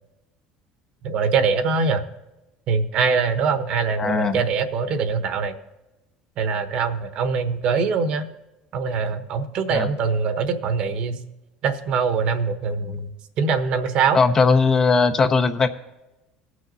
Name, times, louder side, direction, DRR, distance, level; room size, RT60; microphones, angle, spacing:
voice 1, 1.0-2.0 2.7-5.5 6.4-8.2 8.7-11.2 11.6-13.1 13.4-14.2, right 5 dB, 55° right, 9 dB, 1.2 m, -23 dB
voice 2, 4.0-4.4 9.7-9.9 14.1-15.7, left 4 dB, 25° left, 8 dB, 0.7 m, -19 dB
18.5 x 6.3 x 4.0 m, 0.99 s
supercardioid pair, 125°, 2 cm